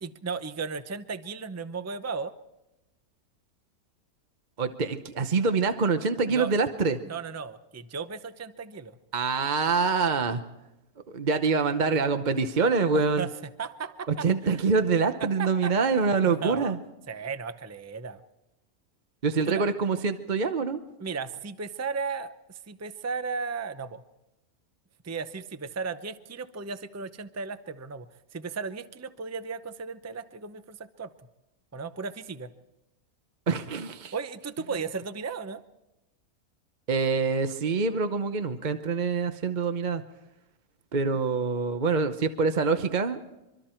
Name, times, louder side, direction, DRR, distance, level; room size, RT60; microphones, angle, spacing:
voice 1, 0.0-2.3 6.3-6.5 7.1-9.0 12.9-14.6 15.2-16.8 17.1-18.2 19.5-19.6 21.0-24.0 25.0-28.1 28.3-31.1 31.7-32.5 34.1-35.6, right 5 dB, 15° right, 11 dB, 0.5 m, -35 dB
voice 2, 4.6-7.0 9.1-10.4 11.1-13.3 14.2-16.8 19.2-20.8 33.5-34.1 36.9-40.0 40.9-43.2, right 4 dB, 35° right, 8 dB, 0.9 m, -25 dB
24.5 x 24.5 x 4.5 m, 0.93 s
omnidirectional pair, 1.6 m